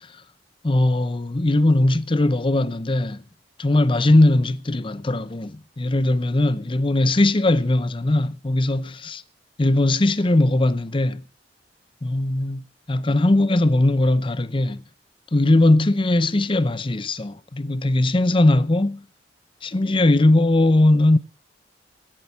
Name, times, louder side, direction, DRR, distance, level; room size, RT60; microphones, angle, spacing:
voice 1, 0.6-3.2 3.6-9.2 9.6-11.2 12.0-12.6 12.9-14.8 15.3-19.0 19.6-21.2, left 2 dB, 30° left, 0.7 m, -19 dB
16.5 x 7.7 x 6.9 m
head